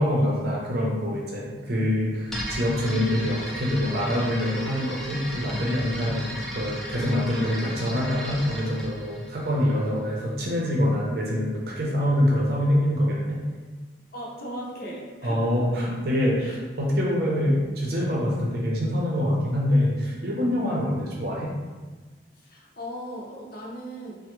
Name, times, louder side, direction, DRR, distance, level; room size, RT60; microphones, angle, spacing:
voice 1, 0.0-13.4 15.2-21.5, left 1 dB, 55° right, -3 dB, 0.6 m, -25 dB
sound 1, 2.3-10.1, equal, ahead, 0.3 m, -36 dB
voice 2, 14.1-15.7 16.4-16.6 22.4-24.2, equal, 50° left, -2 dB, 0.6 m, -37 dB
3.3 x 2.1 x 3.0 m, 1.3 s
head